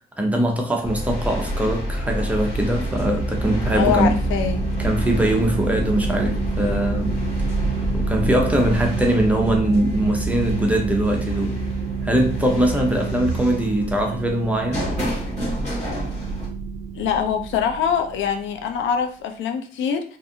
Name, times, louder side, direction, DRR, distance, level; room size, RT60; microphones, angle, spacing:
voice 1, 0.2-4.1 4.8-7.2 7.9-11.6 12.0-14.9, right 1 dB, 5° right, 1 dB, 0.6 m, -21 dB
sound 1, 0.8-16.5, equal, 35° left, 1.3 m, -29 dB
sound 2, 2.5-18.8, right 5 dB, 60° right, 0.4 m, -29 dB
voice 2, 3.7-4.7 17.0-20.0, left 7 dB, 75° left, 5 dB, 0.4 m, -23 dB
2.5 x 2.4 x 2.7 m, 0.42 s
cardioid pair, 90°, 20 cm